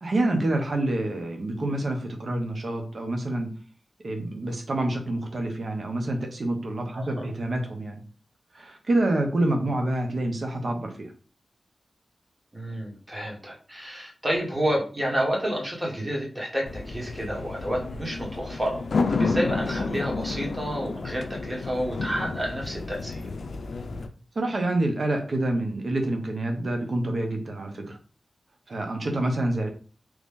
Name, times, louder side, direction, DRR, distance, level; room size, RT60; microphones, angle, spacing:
voice 1, 0.0-3.5 4.0-8.0 8.5-11.1 24.3-28.0 28.7-29.7, right 1 dB, 60° right, 3 dB, 0.9 m, -27 dB
voice 2, 6.9-7.2 12.5-23.3, equal, 25° right, -2 dB, 1.5 m, -30 dB
sound 1, 16.7-24.1, left 4 dB, 80° left, 0.4 m, -30 dB
3.1 x 2.6 x 3.6 m, 0.38 s
cardioid pair, 60°, 0 cm